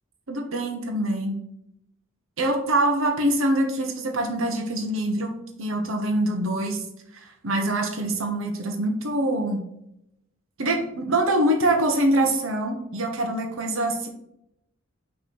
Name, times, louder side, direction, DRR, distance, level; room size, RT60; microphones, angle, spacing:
voice 1, 0.3-1.4 2.4-5.3 5.6-6.9 7.1-9.6 10.6-14.1, right 1 dB, 90° right, 3 dB, 1.0 m, -24 dB
5.9 x 3.3 x 5.4 m, 0.79 s
head